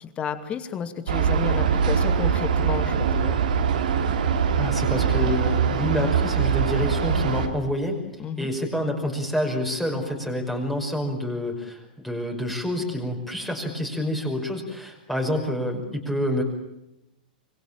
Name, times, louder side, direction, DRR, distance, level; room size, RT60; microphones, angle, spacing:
voice 1, 0.0-3.4 8.2-8.5, left 7 dB, 25° left, 10 dB, 2.4 m, -32 dB
sound 1, 1.1-7.5, right 7 dB, 65° right, 3.2 m, -23 dB
voice 2, 4.6-8.0 8.4-16.4, left 1 dB, 5° left, 1 dB, 5.4 m, -28 dB
26.0 x 22.0 x 9.0 m, 0.89 s
figure-of-eight pair, 105°, 5 cm